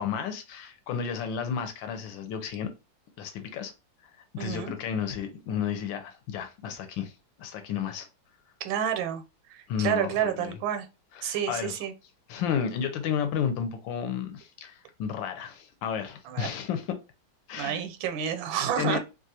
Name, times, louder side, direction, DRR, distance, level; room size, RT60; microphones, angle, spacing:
voice 1, 0.0-2.7 3.2-3.7 4.4-7.1 7.4-8.1 9.7-10.6 11.1-11.8 12.3-17.0 17.5-17.8 18.8-19.0, left 8 dB, 80° left, 1.3 m, -32 dB
voice 2, 4.4-4.7 8.6-9.2 9.5-10.9 11.2-11.9 16.3-16.5 17.6-19.0, right 9 dB, 90° right, 1.4 m, -29 dB
3.2 x 2.4 x 2.7 m
omnidirectional pair, 2.1 m